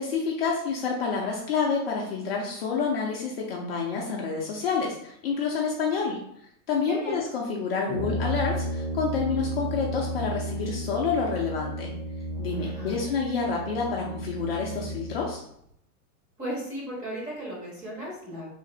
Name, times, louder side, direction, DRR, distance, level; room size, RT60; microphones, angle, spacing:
voice 1, 0.0-6.2 6.7-11.9 12.4-15.4, left 5 dB, 40° left, -2 dB, 0.5 m, -28 dB
voice 2, 6.9-7.2 12.5-13.0 16.4-18.5, right 1 dB, 15° right, -5 dB, 0.8 m, -36 dB
Brass instrument, 7.9-15.3, right 1 dB, 55° right, 0.8 m, -33 dB
3.2 x 2.5 x 3.7 m, 0.71 s
supercardioid pair, 170°, 48 cm